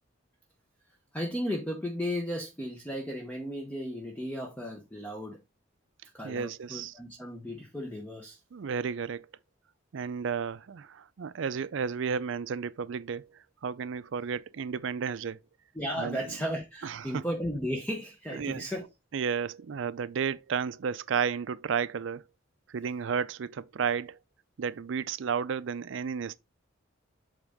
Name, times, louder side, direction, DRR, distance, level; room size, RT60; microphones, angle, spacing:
voice 1, 1.1-5.4 6.1-8.4 15.7-18.9, equal, 5° left, 0.8 m, -35 dB
voice 2, 6.2-6.9 8.5-9.3 9.9-13.3 13.6-15.4 16.0-16.2 16.8-17.2 18.3-18.6 19.1-22.2 22.7-24.2 24.6-26.4, right 6 dB, 65° right, 0.4 m, -32 dB
8.1 x 3.6 x 3.5 m
head